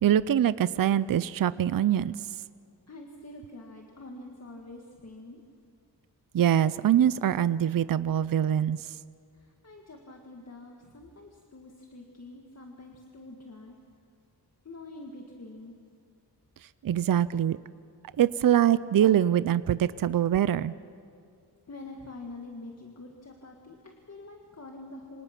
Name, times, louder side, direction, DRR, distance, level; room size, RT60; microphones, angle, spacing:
voice 1, 0.0-2.1 6.3-8.8 16.8-17.6 18.2-20.7, right 10 dB, 55° right, 16 dB, 0.5 m, -23 dB
voice 2, 2.9-5.4 9.3-13.8 14.6-15.8 21.7-25.2, left 2 dB, 40° left, 1 dB, 1.8 m, -46 dB
28.5 x 25.5 x 6.0 m, 2.3 s
wide cardioid pair, 165°, 41 cm